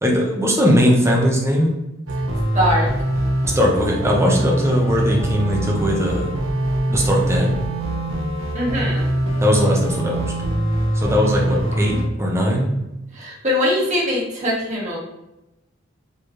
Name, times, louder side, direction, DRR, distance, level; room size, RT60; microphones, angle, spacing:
voice 1, 0.0-1.7 3.5-6.3 6.9-7.6 9.4-10.3 10.9-12.7, equal, 15° right, -1 dB, 0.8 m, -19 dB
sound 1, 2.1-12.1, right 1 dB, 80° right, 0.7 m, -22 dB
voice 2, 2.5-2.9 8.5-9.1 13.1-15.0, left 1 dB, 35° right, -4 dB, 1.3 m, -21 dB
4.5 x 3.0 x 3.2 m, 0.94 s
head